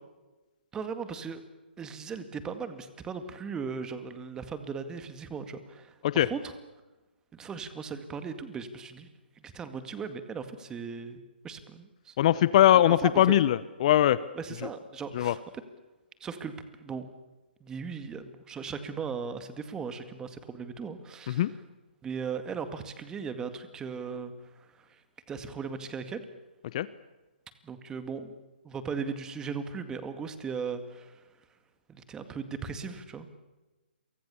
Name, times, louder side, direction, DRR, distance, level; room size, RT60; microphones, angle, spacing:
voice 1, 0.7-1.4 1.8-6.5 7.3-9.1 9.4-12.1 13.0-13.2 14.3-15.4 16.2-17.1 17.6-21.6 22.0-25.0 25.3-26.2 27.6-28.3 28.6-31.2 31.9-33.3, right 5 dB, 10° right, 10 dB, 2.0 m, -38 dB
voice 2, 12.2-14.2 15.1-15.3 21.3-21.5 26.7-26.9, left 12 dB, 40° left, 17 dB, 0.8 m, -21 dB
30.0 x 24.0 x 7.1 m, 1.2 s
figure-of-eight pair, 135°, 6 cm